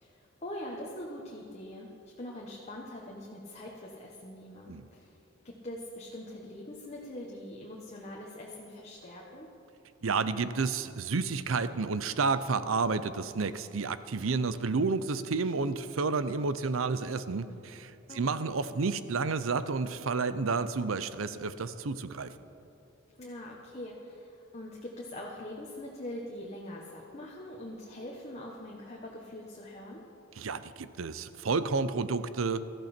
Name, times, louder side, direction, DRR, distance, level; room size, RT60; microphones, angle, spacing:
voice 1, 0.0-1.9 2.2-5.1 5.4-9.5 18.1-18.3 23.2-30.0, left 1 dB, 35° left, -2 dB, 1.3 m, -43 dB
voice 2, 10.0-22.3 30.4-32.6, right 4 dB, 80° right, 13 dB, 0.6 m, -30 dB
17.0 x 13.5 x 4.4 m, 2.7 s
head